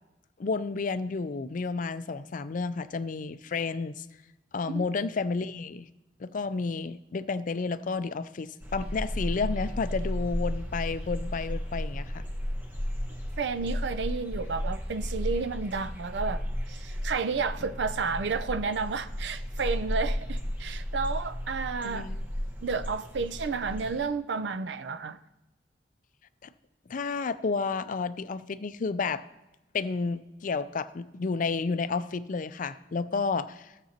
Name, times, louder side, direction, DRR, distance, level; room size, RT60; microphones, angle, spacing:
voice 1, 0.4-4.0 4.5-5.9 6.2-12.2 21.8-22.2 26.4-26.5 26.9-29.2 29.7-33.7, left 4 dB, 50° left, 0.4 m, -31 dB
sound 1, 8.6-24.1, equal, 10° right, 1.2 m, -34 dB
voice 2, 13.4-22.1 22.6-25.2, right 4 dB, 75° right, 0.5 m, -31 dB
15.5 x 6.8 x 2.9 m
head